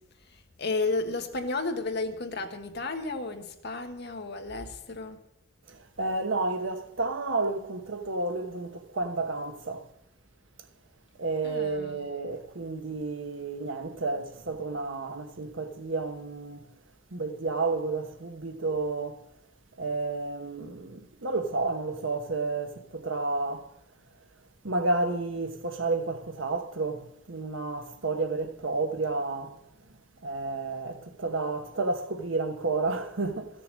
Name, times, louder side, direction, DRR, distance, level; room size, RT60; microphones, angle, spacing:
voice 1, 0.6-5.2 11.4-12.1, left 3 dB, 60° left, 1.3 m, -32 dB
voice 2, 6.0-9.8 11.2-16.6 17.1-19.2 19.8-23.7 24.6-29.6 30.2-33.5, right 3 dB, 80° right, 1.1 m, -31 dB
14.5 x 6.8 x 7.3 m
head